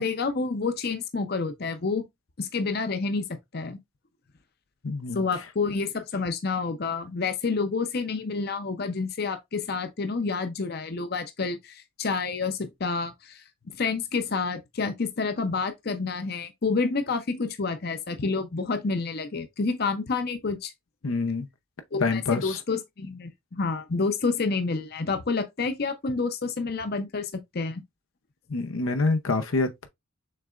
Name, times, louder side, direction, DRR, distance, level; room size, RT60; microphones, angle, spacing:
voice 1, 0.0-2.0 2.4-3.8 5.1-13.4 13.8-20.7 21.9-27.8, left 4 dB, 50° left, 0.7 m, -29 dB
voice 2, 4.8-5.2 21.0-21.5 22.0-22.6 28.5-29.9, left 3 dB, 85° left, 0.7 m, -26 dB
6.6 x 3.3 x 2.4 m
head